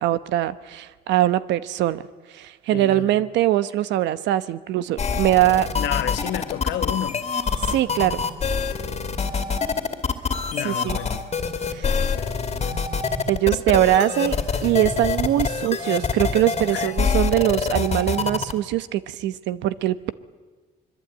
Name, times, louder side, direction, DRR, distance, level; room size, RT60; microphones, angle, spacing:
voice 1, 0.0-2.0 2.3-5.7 7.7-8.2 10.6-11.0 11.7-12.0 13.3-14.4 14.6-20.1, right 14 dB, 90° right, 1.0 m, -22 dB
voice 2, 2.7-3.1 5.7-7.3 10.5-11.3 12.0-12.9 16.7-16.9, left 12 dB, 80° left, 1.2 m, -31 dB
sound 1, 5.0-18.5, left 5 dB, 35° left, 2.4 m, -25 dB
25.0 x 22.5 x 8.9 m
cardioid pair, 100°, 18 cm